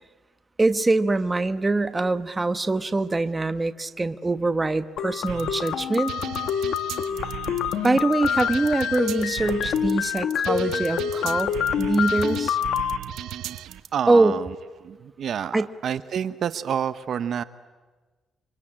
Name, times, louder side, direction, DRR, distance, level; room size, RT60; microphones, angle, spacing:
voice 1, 0.6-6.1 7.8-12.6 14.1-14.4 15.5-15.7, right 2 dB, 20° right, 10 dB, 1.1 m, -23 dB
sound 1, 5.0-13.0, left 9 dB, 75° left, 1.2 m, -27 dB
sound 2, 5.3-13.9, right 12 dB, 90° right, 1.1 m, -37 dB
voice 2, 13.9-14.5 14.8-17.4, right 8 dB, 60° right, 12 dB, 0.9 m, -28 dB
26.5 x 25.0 x 8.8 m, 1.3 s
cardioid pair, 115°, 0 cm